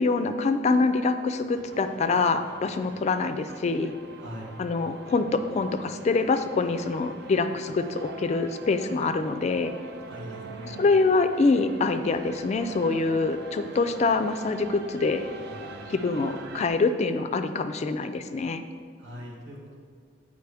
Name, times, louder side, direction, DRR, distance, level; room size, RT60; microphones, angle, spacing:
voice 1, 0.0-3.9 4.6-9.7 10.6-15.3 15.9-18.6, left 3 dB, 35° left, 9 dB, 0.3 m, -25 dB
sound 1, 1.5-16.7, right 3 dB, 60° right, 0.4 m, -43 dB
voice 2, 4.2-4.5 10.1-10.8 19.0-19.8, equal, 90° right, -3 dB, 1.0 m, -41 dB
7.8 x 5.1 x 3.4 m, 2.1 s
head